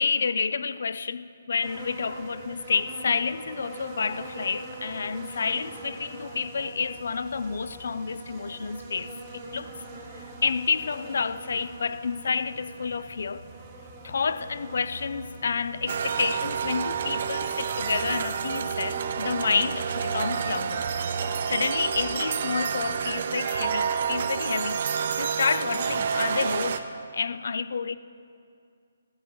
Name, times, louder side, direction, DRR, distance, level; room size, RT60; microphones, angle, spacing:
voice 1, 0.0-9.7 10.1-13.4 14.0-20.9 21.5-26.9 27.1-28.0, left 5 dB, 65° left, 0.4 m, -29 dB
sound 1, 1.6-21.6, right 3 dB, 20° right, 1.9 m, -42 dB
sound 2, 15.9-26.8, right 7 dB, 45° right, 0.7 m, -29 dB
16.0 x 13.5 x 3.1 m
hypercardioid pair, 160°, 0 cm